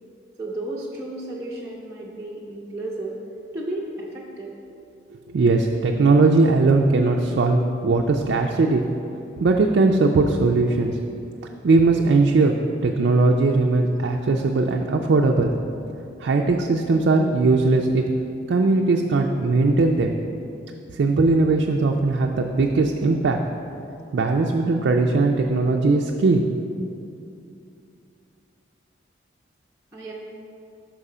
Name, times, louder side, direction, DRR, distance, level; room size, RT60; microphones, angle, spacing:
voice 1, 0.4-3.2 3.5-4.5 29.9-30.1, right 2 dB, 15° right, -6 dB, 0.6 m, -33 dB
voice 2, 5.3-8.8 9.4-11.0 11.6-12.5 12.8-15.5 16.2-18.0 18.5-20.1 20.9-23.4 24.1-26.4, right 3 dB, 70° right, 1 dB, 0.4 m, -19 dB
6.1 x 5.4 x 4.9 m, 2.6 s
head